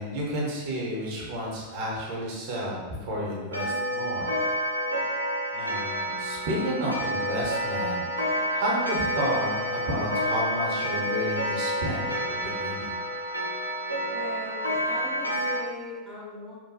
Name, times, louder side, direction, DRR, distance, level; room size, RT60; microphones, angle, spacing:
voice 1, 0.0-4.4 5.5-8.0 8.5-12.2 12.4-13.0, equal, 45° right, -3 dB, 0.8 m, -31 dB
Clock, 3.5-15.6, equal, 85° right, 0.4 m, -29 dB
voice 2, 14.1-16.6, left 2 dB, 10° left, -6 dB, 0.6 m, -40 dB
2.8 x 2.2 x 2.7 m, 1.3 s
figure-of-eight pair, 90°, 0 cm